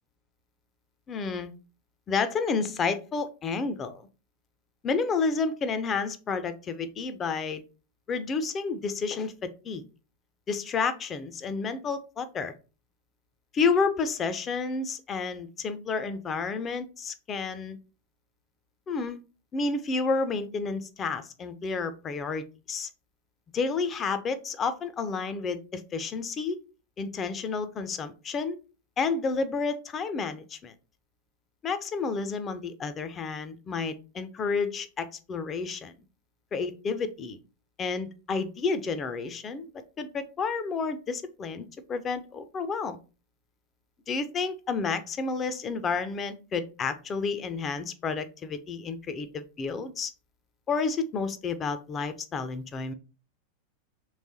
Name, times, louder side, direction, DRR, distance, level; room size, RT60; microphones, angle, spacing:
voice 1, 1.1-1.5 2.1-4.0 4.8-7.6 8.1-9.8 10.5-12.5 13.5-17.8 18.9-19.2 19.5-22.9 23.5-26.6 27.0-28.6 29.0-30.7 31.6-35.9 36.5-37.4 37.8-39.7 40.0-43.0 44.1-50.1 50.7-52.9, left 4 dB, 25° left, 11 dB, 0.5 m, -30 dB
3.2 x 3.2 x 4.1 m, 0.34 s
figure-of-eight pair, 90°, 0 cm